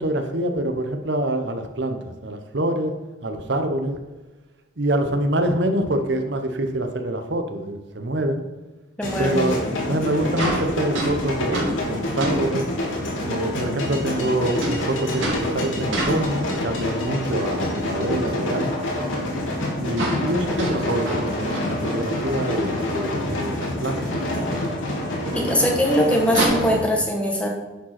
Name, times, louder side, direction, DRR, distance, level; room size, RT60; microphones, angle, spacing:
voice 1, 0.0-2.9 3.2-4.0 4.8-8.4 9.2-12.7 13.2-18.8 19.8-24.6 25.3-25.8, right 1 dB, 60° right, 6 dB, 0.9 m, -26 dB
sound 1, 9.0-26.8, left 1 dB, 85° left, 2.7 m, -27 dB
voice 2, 9.0-9.4 25.3-27.5, equal, 5° left, 0 dB, 1.4 m, -21 dB
sound 2, 10.3-13.0 14.6-17.0 17.3-18.1 18.3-18.4 18.8-18.9 19.2-19.3 19.5-19.6 19.9-22.3 22.7-22.8 23.1-23.2 24.3-24.4 26.3-26.5, right 1 dB, 80° right, 3.3 m, -29 dB
10.0 x 5.2 x 5.9 m, 1.2 s
head